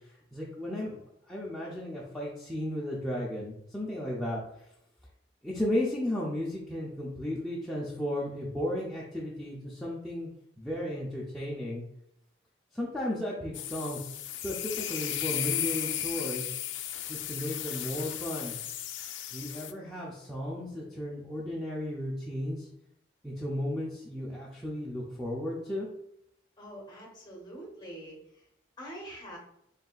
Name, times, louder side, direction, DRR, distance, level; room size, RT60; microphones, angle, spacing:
voice 1, 0.0-4.7 5.4-10.3 10.6-11.8 12.7-14.1 14.4-16.5 17.1-18.6 19.3-22.7 23.2-25.9, left 1 dB, ahead, -7 dB, 0.5 m, -34 dB
sound 1, 13.5-19.7, left 11 dB, 75° left, 0.4 m, -35 dB
voice 2, 26.6-28.5 28.8-29.4, right 1 dB, 20° left, -1 dB, 1.1 m, -45 dB
4.0 x 3.9 x 2.4 m, 0.77 s
head